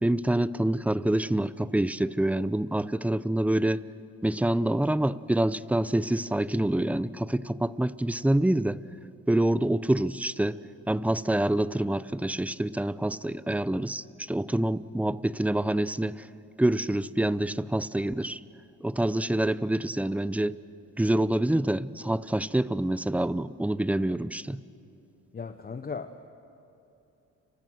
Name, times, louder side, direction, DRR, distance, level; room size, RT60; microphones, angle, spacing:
voice 1, 0.0-3.8 4.2-8.8 9.3-10.6 10.9-16.3 16.6-18.4 18.8-20.6 21.0-24.6, right 1 dB, 5° right, 17 dB, 0.6 m, -26 dB
voice 2, 25.3-26.3, left 5 dB, 30° left, 8 dB, 1.0 m, -37 dB
30.0 x 25.0 x 6.4 m, 2.8 s
cardioid pair, 90°, 30 cm